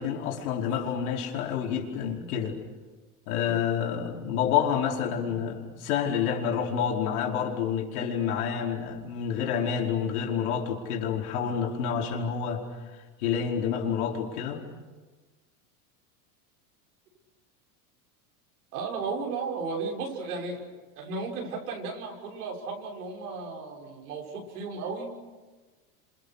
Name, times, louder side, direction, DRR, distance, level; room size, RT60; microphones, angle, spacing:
voice 1, 0.0-2.6 3.3-12.6 13.2-14.6, left 7 dB, 75° left, 0 dB, 5.1 m, -28 dB
voice 2, 18.7-20.7 21.0-25.1, right 4 dB, 90° right, 0 dB, 6.8 m, -34 dB
30.0 x 27.0 x 6.6 m, 1.3 s
supercardioid pair, 120°, 44 cm